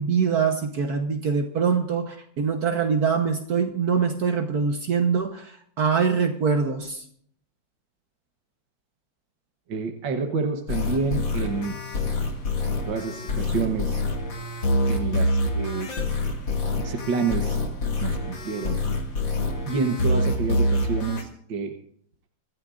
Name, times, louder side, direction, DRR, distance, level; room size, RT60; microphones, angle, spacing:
voice 1, 0.0-7.0, right 6 dB, 60° right, 4 dB, 1.6 m, -24 dB
voice 2, 9.7-12.0 12.9-14.0 14.9-16.0 16.8-17.6 18.0-18.8 19.7-21.7, right 5 dB, 75° right, 4 dB, 1.9 m, -28 dB
sound 1, 10.7-21.2, left 2 dB, 80° left, 2.9 m, -26 dB
25.0 x 14.5 x 2.5 m, 0.62 s
omnidirectional pair, 2.0 m